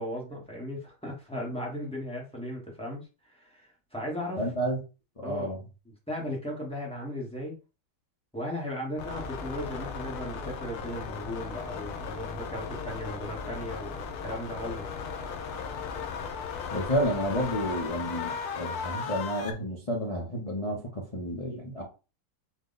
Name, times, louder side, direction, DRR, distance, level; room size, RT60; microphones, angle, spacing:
voice 1, 0.0-4.5 5.2-5.5 5.9-7.6 8.3-14.9, equal, 5° left, -2 dB, 0.7 m, -37 dB
voice 2, 4.4-4.8 5.2-5.6 16.7-21.8, equal, 40° left, -3 dB, 0.5 m, -31 dB
sound 1, 9.0-19.5, left 6 dB, 90° left, 1.6 m, -36 dB
4.7 x 2.2 x 3.9 m, 0.31 s
omnidirectional pair, 2.3 m